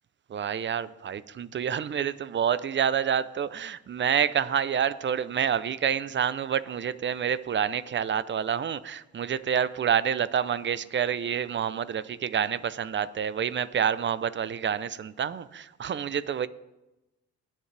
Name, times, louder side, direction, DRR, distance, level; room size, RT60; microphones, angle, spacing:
voice 1, 0.3-16.5, right 8 dB, 40° right, 0.6 m, -28 dB
21.0 x 7.4 x 3.4 m
cardioid pair, 90°, 30 cm